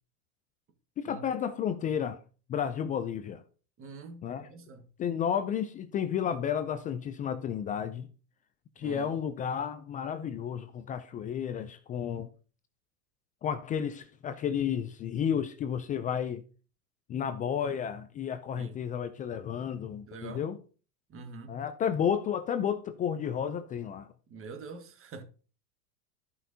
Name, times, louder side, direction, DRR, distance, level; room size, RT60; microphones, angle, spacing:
voice 1, 1.0-2.2 2.5-3.4 4.2-4.5 5.0-8.1 8.8-12.3 13.4-16.4 17.1-20.6 21.5-24.1, left 8 dB, 20° left, 0.3 m, -32 dB
voice 2, 3.8-4.9 8.8-9.2 18.5-18.8 20.1-20.4 21.1-21.6 24.3-25.2, right 4 dB, 30° right, 1.5 m, -45 dB
13.5 x 5.5 x 2.8 m
hypercardioid pair, 110°, 46 cm